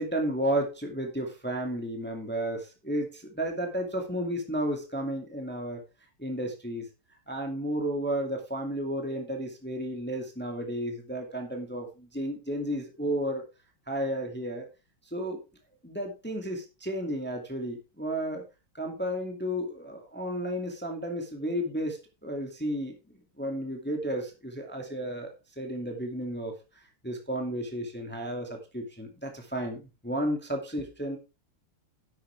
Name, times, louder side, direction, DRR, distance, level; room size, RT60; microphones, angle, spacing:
voice 1, 0.0-5.8 6.2-6.8 7.3-13.4 13.9-14.7 15.1-15.4 15.8-18.4 18.7-23.0 23.4-25.3 25.6-26.5 27.0-31.2, right 1 dB, 5° left, 2 dB, 2.0 m, -32 dB
11.5 x 8.6 x 3.4 m, 0.28 s
omnidirectional pair, 2.3 m